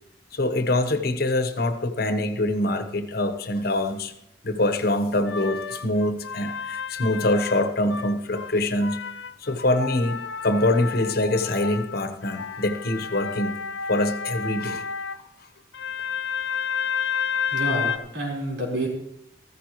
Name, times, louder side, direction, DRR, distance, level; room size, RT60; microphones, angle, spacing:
voice 1, 0.3-4.1 4.4-9.0 9.4-10.2 10.4-13.5 13.9-14.8, left 1 dB, 55° left, 9 dB, 1.0 m, -24 dB
sound 1, 5.3-8.5 8.8-15.2 15.7-18.0, left 7 dB, 70° left, 0.6 m, -31 dB
voice 2, 17.5-18.9, right 1 dB, 80° right, -2 dB, 4.2 m, -28 dB
14.5 x 14.5 x 3.1 m, 0.77 s
head